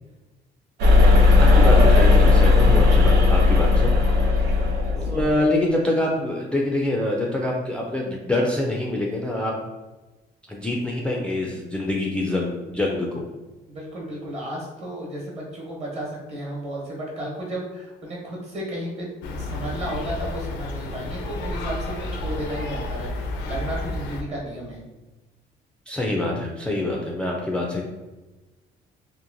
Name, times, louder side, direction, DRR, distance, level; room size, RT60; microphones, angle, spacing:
sound 1, 0.8-5.3, left 3 dB, 80° right, 0.5 m, -15 dB
voice 1, 1.3-3.9 5.0-9.5 10.5-13.3 25.9-27.8, left 1 dB, 5° left, -2 dB, 0.3 m, -25 dB
voice 2, 4.9-5.4 13.7-24.8, right 1 dB, 40° right, -3 dB, 1.1 m, -33 dB
sound 2, 19.2-24.2, left 2 dB, 85° left, 0.4 m, -31 dB
2.9 x 2.2 x 2.5 m, 1.1 s
cardioid pair, 110°, 17 cm